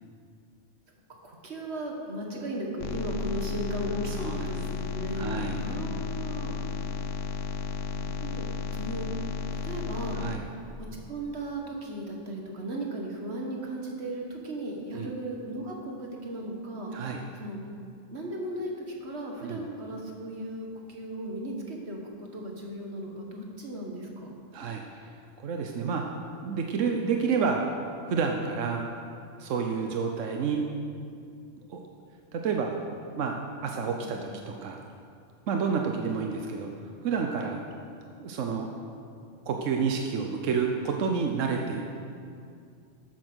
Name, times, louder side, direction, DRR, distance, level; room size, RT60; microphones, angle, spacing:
voice 1, 1.1-6.5 7.9-8.5 8.7-9.1 9.6-10.2 10.8-16.9 17.3-17.6 18.1-24.3 33.9-34.4, right 1 dB, 60° right, 0 dB, 2.1 m, -36 dB
sound 1, 2.8-10.4, left 5 dB, 80° left, 1.1 m, -33 dB
voice 2, 4.1-4.5 5.1-5.6 10.2-10.4 14.9-15.1 16.9-17.2 19.4-19.6 24.5-25.1 25.4-26.2 26.4-27.6 28.0-28.8 29.4-30.6 31.7-31.8 32.3-32.8 33.2-34.8 35.5-36.7 37.0-37.6 38.2-38.7 39.5-41.8, right 5 dB, 80° right, 2 dB, 1.2 m, -29 dB
13.0 x 8.6 x 6.3 m, 2.4 s
omnidirectional pair, 1.3 m